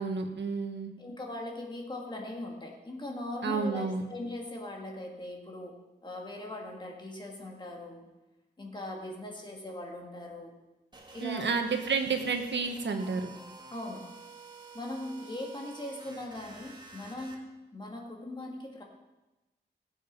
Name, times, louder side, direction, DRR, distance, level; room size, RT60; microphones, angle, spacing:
voice 1, 0.0-0.9 3.4-4.0 11.2-13.3, right 4 dB, 80° right, 5 dB, 1.4 m, -30 dB
voice 2, 1.0-8.1 8.6-10.6 11.1-11.5 13.7-14.1 14.7-18.8, left 1 dB, 25° left, 0 dB, 2.1 m, -40 dB
sound 1, 10.9-17.4, right 3 dB, 25° right, 1.7 m, -50 dB
17.0 x 7.8 x 5.3 m, 1.1 s
wide cardioid pair, 170°, 18 cm